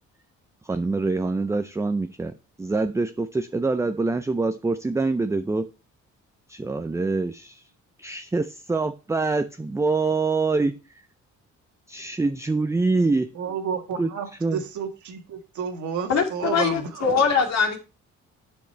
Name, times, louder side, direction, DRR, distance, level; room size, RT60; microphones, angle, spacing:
voice 1, 0.6-2.3 2.6-5.7 6.5-7.7 8.0-11.0 11.9-13.3 13.9-14.1 14.4-14.6, right 3 dB, 10° right, 10 dB, 0.4 m, -25 dB
voice 2, 13.4-17.0, right 6 dB, 75° right, 5 dB, 1.8 m, -31 dB
voice 3, 16.1-17.8, left 5 dB, 60° left, 1 dB, 2.3 m, -22 dB
8.6 x 5.2 x 4.4 m, 0.32 s
cardioid pair, 90°, 30 cm